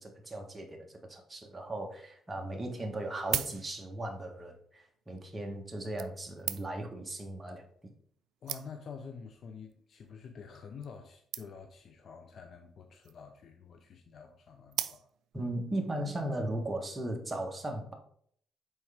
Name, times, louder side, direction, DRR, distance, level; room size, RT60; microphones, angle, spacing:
voice 1, 0.0-7.6 15.3-17.9, right 1 dB, 20° right, 2 dB, 1.3 m, -37 dB
sound 1, 2.2-2.3 3.0-4.1 5.0-5.2 6.0-7.0 7.8-7.9 8.1-8.2 8.5-9.0 9.7-9.9 10.2-10.3 10.5-10.6 10.8-11.0 11.3-11.8 12.8-13.3 14.7-15.4 16.0-16.1, right 11 dB, 80° right, 0.4 m, -38 dB
voice 2, 8.4-15.1, left 6 dB, 60° left, 5 dB, 0.6 m, -48 dB
6.3 x 4.5 x 3.5 m, 0.63 s
cardioid pair, 90°, 0 cm